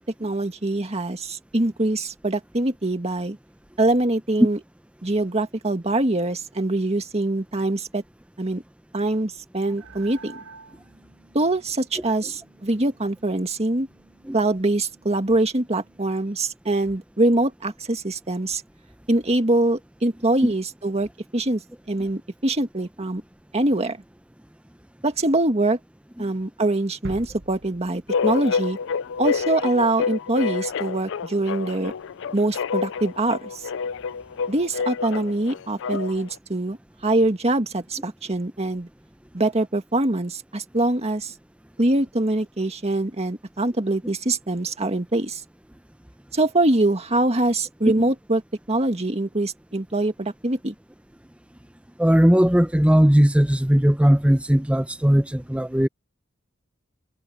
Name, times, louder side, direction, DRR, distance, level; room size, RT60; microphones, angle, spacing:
voice 1, 0.2-3.4 3.8-4.6 5.0-8.0 8.4-8.6 8.9-10.4 11.3-13.9 14.3-18.6 19.1-21.6 21.9-23.2 23.5-24.0 25.0-25.8 26.2-28.8 29.2-31.9 32.3-33.6 34.5-36.8 37.0-38.9 39.3-41.3 41.8-45.4 46.3-48.4 48.7-50.7, right 2 dB, 30° right, 1.9 m, -23 dB
sound 1, 9.8-16.1, right 4 dB, 85° right, 5.1 m, -52 dB
sound 2, 27.0-29.0 29.4-29.5, right 2 dB, 55° right, 1.5 m, -42 dB
sound 3, 28.1-36.3, left 5 dB, 65° left, 0.4 m, -28 dB
voice 2, 52.0-55.9, equal, 5° right, 0.8 m, -18 dB
head